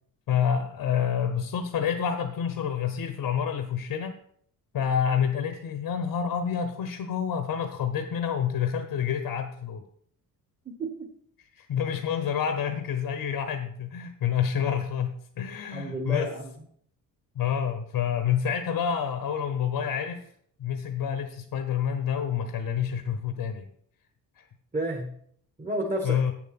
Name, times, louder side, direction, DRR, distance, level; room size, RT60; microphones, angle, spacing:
voice 1, 0.3-4.2 4.7-9.8 11.5-16.3 17.3-20.3 20.6-23.7 24.4-24.5 26.0-26.3, left 8 dB, 75° left, 8 dB, 1.1 m, -28 dB
voice 2, 10.6-11.1 15.7-16.5 24.7-25.2 25.6-26.2, right 1 dB, 20° right, 1 dB, 1.4 m, -31 dB
8.5 x 7.4 x 5.9 m, 0.64 s
cardioid pair, 125°, 37 cm